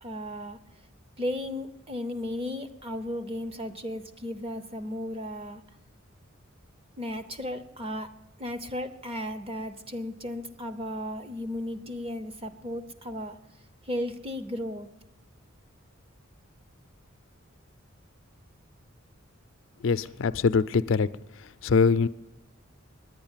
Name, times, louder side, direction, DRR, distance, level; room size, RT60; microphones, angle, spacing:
voice 1, 0.0-0.6 1.2-5.6 7.0-8.1 8.4-13.4 13.8-14.9, left 1 dB, 30° right, 10 dB, 0.8 m, -35 dB
voice 2, 19.8-21.1 21.6-22.1, left 5 dB, 65° left, 14 dB, 0.4 m, -23 dB
10.5 x 9.5 x 8.9 m, 0.87 s
head